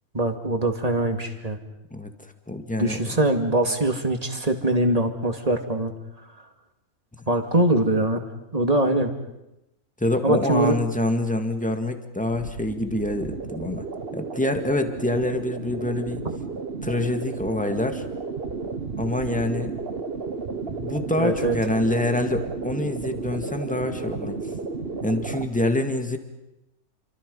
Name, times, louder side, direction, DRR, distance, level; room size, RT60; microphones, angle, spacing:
voice 1, 0.1-1.6 2.8-5.9 7.3-8.2 8.5-9.1 10.2-10.7 21.2-21.6, right 1 dB, 25° right, 5 dB, 2.3 m, -22 dB
voice 2, 2.5-3.1 10.0-13.9 14.1-16.3 16.8-18.0 19.0-19.8 20.8-24.4 25.0-26.2, left 1 dB, 5° left, 6 dB, 2.0 m, -26 dB
sound 1, 12.3-25.4, right 4 dB, 40° right, 1.5 m, -33 dB
29.0 x 25.0 x 5.5 m, 0.92 s
omnidirectional pair, 1.6 m